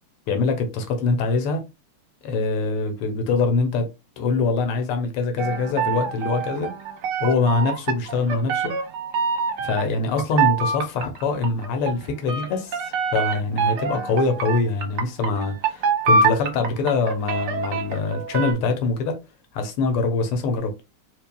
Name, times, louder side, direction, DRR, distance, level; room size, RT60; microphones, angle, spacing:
voice 1, 0.3-1.6 2.2-3.9 4.2-6.7 7.2-8.7 9.6-19.2 19.5-20.8, left 3 dB, 90° left, 1.7 m, -24 dB
sound 1, 5.4-9.9 10.2-18.5, right 4 dB, 75° right, 1.8 m, -25 dB
4.6 x 3.2 x 2.2 m
omnidirectional pair, 2.4 m